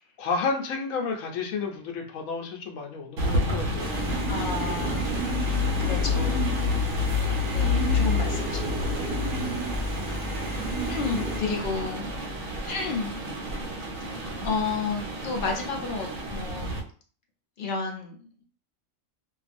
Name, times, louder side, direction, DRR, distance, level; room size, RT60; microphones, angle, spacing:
voice 1, 0.2-4.0, left 4 dB, 80° left, 2 dB, 1.0 m, -31 dB
sound 1, 3.2-16.8, left 3 dB, 75° right, 1.1 m, -29 dB
sound 2, 3.8-11.4, right 1 dB, 10° right, 0.7 m, -32 dB
voice 2, 4.3-6.6 7.5-9.2 10.4-10.5 10.8-12.0 12.7-13.1 14.1-16.7 17.6-18.5, left 4 dB, 55° left, 0 dB, 0.6 m, -32 dB
2.5 x 2.3 x 2.5 m, 0.42 s
omnidirectional pair, 1.4 m